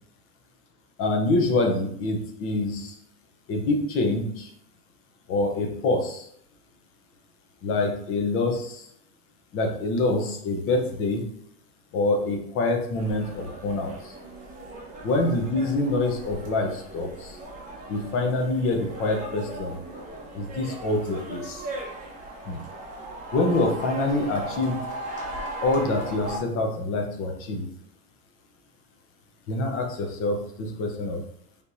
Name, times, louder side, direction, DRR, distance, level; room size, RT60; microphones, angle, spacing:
voice 1, 1.0-3.0 3.5-4.5 5.3-6.3 7.6-8.9 9.5-11.3 11.9-14.1 15.0-17.4 17.9-19.8 20.3-21.7 22.5-22.6 23.3-24.9 25.6-27.7 29.5-31.2, left 2 dB, 30° left, 2 dB, 0.7 m, -26 dB
sound 1, 12.9-26.4, right 1 dB, 15° right, 1.0 m, -38 dB
4.5 x 3.5 x 2.6 m, 0.70 s
supercardioid pair, 150°, 45 cm